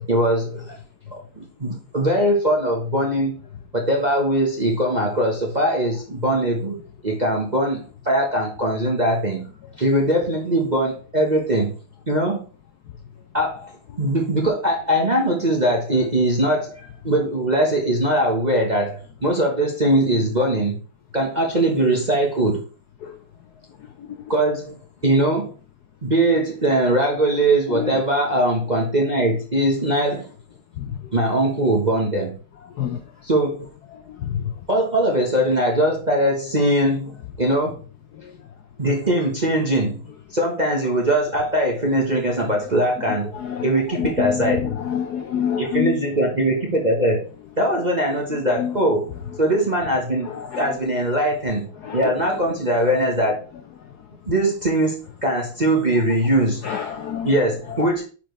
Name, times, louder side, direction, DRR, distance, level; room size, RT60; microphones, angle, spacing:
voice 1, 0.1-0.7 1.1-3.4 3.7-9.5 9.8-11.7 12.1-12.4 13.3-13.7 14.0-16.7 17.0-20.8 21.1-22.6 24.3-24.8 25.0-25.5 26.0-30.3 31.1-32.4 33.2-33.7 34.7-37.7 38.8-40.0 40.3-43.3 43.6-44.7 45.6-47.2 47.6-49.1 49.4-53.4 54.3-56.7 57.2-58.0, right 1 dB, 25° right, 1.0 m, -21 dB
voice 2, 44.0-46.0 48.6-48.7 51.9-52.0 56.6-57.3, left 8 dB, 70° left, 0.9 m, -26 dB
8.7 x 4.5 x 3.3 m
omnidirectional pair, 2.4 m